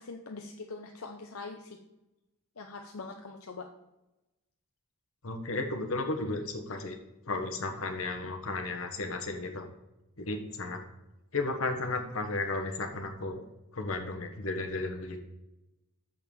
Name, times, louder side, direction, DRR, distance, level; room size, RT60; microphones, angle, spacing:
voice 1, 0.0-1.8 2.6-3.7 8.2-8.4, left 3 dB, 85° left, 3 dB, 0.7 m, -43 dB
voice 2, 5.2-7.0 7.3-9.7 10.2-10.8 11.3-13.4 13.7-15.2, left 2 dB, 70° left, 4 dB, 1.3 m, -34 dB
6.6 x 5.8 x 7.1 m, 0.96 s
head